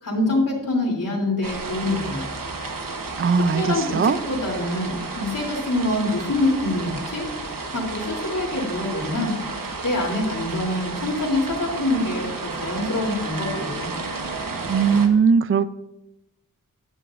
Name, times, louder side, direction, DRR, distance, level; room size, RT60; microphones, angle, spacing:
voice 1, 0.0-2.3 3.6-7.3 7.7-9.3 9.8-13.9, left 2 dB, 65° left, -1 dB, 3.2 m, -25 dB
sound 1, 1.4-15.1, right 3 dB, 70° right, 1.2 m, -32 dB
voice 2, 3.2-4.2 14.7-15.7, right 6 dB, 40° right, 14 dB, 0.4 m, -19 dB
14.0 x 11.0 x 2.6 m, 0.95 s
wide cardioid pair, 80°, 34 cm